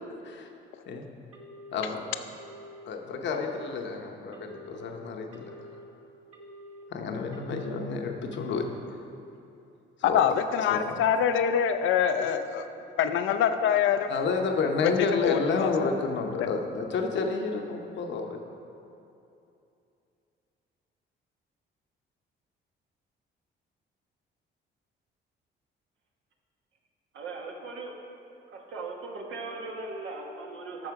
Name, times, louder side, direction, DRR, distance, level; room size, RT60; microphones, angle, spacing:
Telephone, 1.3-1.8 2.3-2.8 3.3-3.8 4.3-4.8 5.3-5.8 6.3-6.8 7.3-7.8 8.3-8.8, equal, 35° right, 1.7 m, -48 dB
voice 1, 1.7-2.0 2.9-5.7 6.9-8.7 10.1-10.2 10.7-11.0 14.1-18.4, left 4 dB, 65° left, 3 dB, 0.9 m, -30 dB
voice 2, 10.1-12.7 13.0-14.1 15.2-15.7, left 8 dB, 80° left, 9 dB, 0.5 m, -25 dB
voice 3, 27.1-28.0 28.5-30.9, right 3 dB, 80° right, 0 dB, 1.2 m, -38 dB
13.0 x 4.3 x 4.7 m, 2.7 s
cardioid pair, 90°, 20 cm